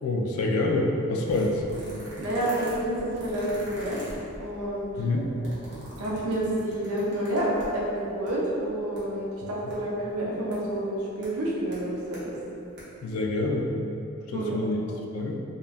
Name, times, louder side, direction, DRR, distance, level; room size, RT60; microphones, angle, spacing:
voice 1, 0.0-1.6 5.0-5.3 13.0-13.7 14.3-14.8 15.1-15.4, left 2 dB, 75° left, 1 dB, 0.3 m, -26 dB
sound 1, 1.3-7.9 8.3-8.4 8.6-9.0 9.7-9.8 10.5-10.6 11.2-11.3 11.7-12.2 12.6-12.8 13.0-13.1, equal, 55° right, 0.8 m, -43 dB
voice 2, 2.2-4.0 4.4-5.3 6.0-12.4 14.3-14.6, right 1 dB, 85° right, -4 dB, 0.6 m, -29 dB
2.5 x 2.2 x 3.3 m, 2.8 s
head